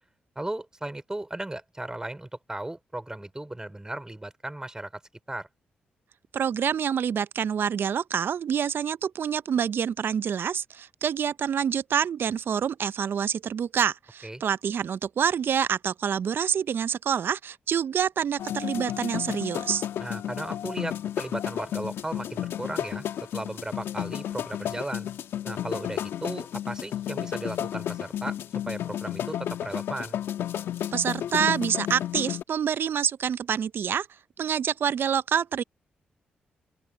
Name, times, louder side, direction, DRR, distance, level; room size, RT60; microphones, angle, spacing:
voice 1, 0.4-5.0 5.3-5.5 14.2-14.4 20.0-23.0 23.3-25.1 25.5-28.4 28.6-30.2, right 1 dB, 15° right, 5.2 m, -36 dB
voice 2, 6.3-19.9 30.9-34.1 34.4-35.6, right 8 dB, 60° right, 0.7 m, -27 dB
Africa Pavillion Drum Jam, 18.4-32.4, left 10 dB, 75° left, 1.6 m, -32 dB
open air
hypercardioid pair, 40°, 4 cm